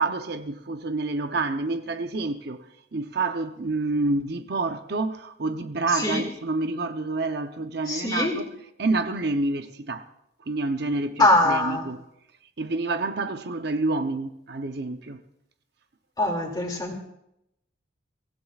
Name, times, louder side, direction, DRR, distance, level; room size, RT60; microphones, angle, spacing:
voice 1, 0.0-2.6 2.9-8.4 8.8-10.1 10.5-12.0 12.6-15.2, right 3 dB, 55° right, 0.7 m, -28 dB
voice 2, 7.9-8.4 11.2-11.8 16.2-17.0, left 2 dB, 20° left, 2.4 m, -22 dB
23.5 x 16.5 x 2.4 m
head